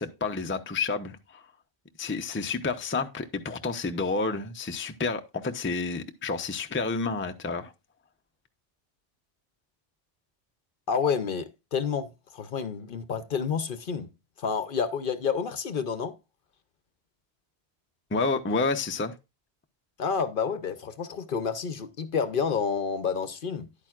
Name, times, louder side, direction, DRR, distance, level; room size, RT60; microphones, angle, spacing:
voice 1, 0.0-1.4 2.0-7.7 18.1-19.1, left 4 dB, 15° left, 0.5 m, -30 dB
voice 2, 10.9-14.1 14.4-16.1 20.0-23.7, left 6 dB, 55° left, 0.8 m, -29 dB
10.5 x 8.8 x 2.4 m
omnidirectional pair, 1.1 m